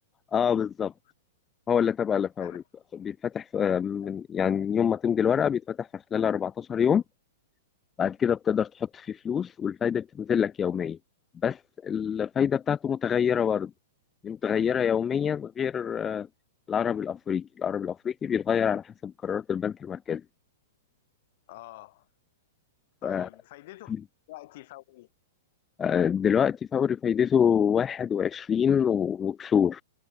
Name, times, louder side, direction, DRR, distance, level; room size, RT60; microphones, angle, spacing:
voice 1, 0.3-0.9 1.7-2.6 2.9-7.0 8.0-11.0 11.4-13.7 14.2-16.3 16.7-20.2 23.0-23.3 25.8-29.8, left 8 dB, 15° left, 0.5 m, -26 dB
voice 2, 21.5-22.1 23.0-23.9 24.3-25.1, left 18 dB, 50° left, 2.1 m, -46 dB
hypercardioid pair, 145°, 0 cm